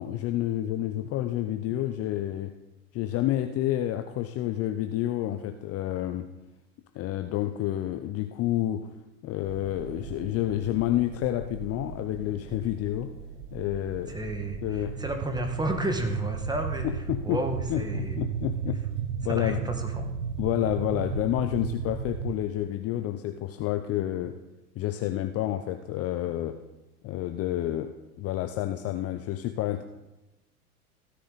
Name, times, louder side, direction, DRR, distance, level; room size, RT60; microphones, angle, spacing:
voice 1, 0.0-2.5 2.9-6.3 6.9-8.9 9.2-13.1 13.5-14.2 14.6-14.9 16.8-17.4 17.7-18.8 19.2-19.7 20.4-24.3 24.8-26.6 27.0-29.8, left 13 dB, 30° left, 7 dB, 0.7 m, -29 dB
sound 1, 9.4-22.4, right 7 dB, 80° right, 1.1 m, -36 dB
voice 2, 14.1-18.2 19.3-20.1, right 2 dB, 10° right, 4 dB, 1.7 m, -31 dB
16.0 x 9.8 x 4.1 m, 0.99 s
hypercardioid pair, 100°, 45 cm